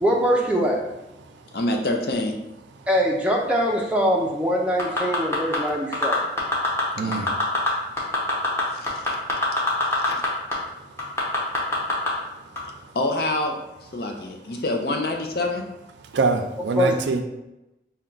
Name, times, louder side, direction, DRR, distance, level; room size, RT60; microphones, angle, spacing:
voice 1, 0.0-0.8 2.9-6.3 16.8-16.9, equal, 5° right, -1 dB, 0.5 m, -22 dB
voice 2, 1.5-2.4 7.0-7.3 8.7-9.2 10.1-10.2 12.9-13.6 13.9-15.6, left 2 dB, 60° left, 3 dB, 0.5 m, -26 dB
sound 1, 4.8-5.6 5.9-6.8 7.1-7.7 8.0-10.3 10.5-10.6 11.0-12.1 12.6-12.7, left 2 dB, 15° left, 0.8 m, -23 dB
voice 3, 16.1-17.2, right 4 dB, 90° right, 6 dB, 0.4 m, -23 dB
4.3 x 2.2 x 3.8 m, 0.95 s
head